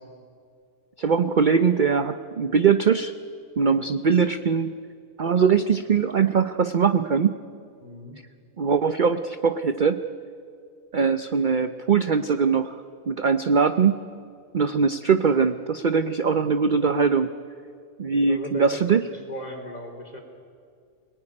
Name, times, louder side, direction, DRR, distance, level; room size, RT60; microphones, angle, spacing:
voice 1, 1.0-3.1 3.6-4.7 5.2-7.3 8.6-10.0 10.9-12.7 13.1-14.0 14.5-17.3 18.0-19.0, right 6 dB, 45° right, 10 dB, 0.7 m, -21 dB
voice 2, 7.8-8.2 16.3-16.6 18.2-20.2, left 1 dB, 30° left, 3 dB, 3.7 m, -37 dB
26.5 x 18.5 x 9.8 m, 2.3 s
omnidirectional pair, 1.5 m